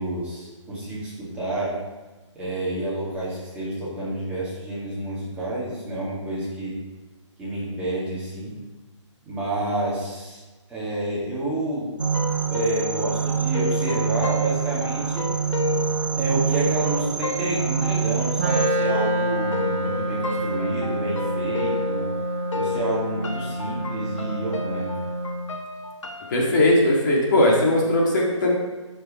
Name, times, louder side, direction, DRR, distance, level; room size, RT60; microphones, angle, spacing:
voice 1, 0.0-1.7 2.3-6.8 7.4-8.5 9.2-10.4 10.7-11.9 12.5-15.3 16.1-22.1 22.5-24.9, right 1 dB, 5° right, -9 dB, 2.1 m, -29 dB
sound 1, 12.0-18.7, right 6 dB, 75° right, 1.1 m, -25 dB
sound 2, 12.1-22.2 22.5-26.3, left 4 dB, 75° left, 1.1 m, -32 dB
Wind instrument woodwind instrument, 18.4-25.5, right 1 dB, 25° right, 0.6 m, -27 dB
voice 2, 26.3-28.5, left 1 dB, 40° left, -3 dB, 1.9 m, -19 dB
9.3 x 5.7 x 4.3 m, 1.2 s
hypercardioid pair, 160°, 16 cm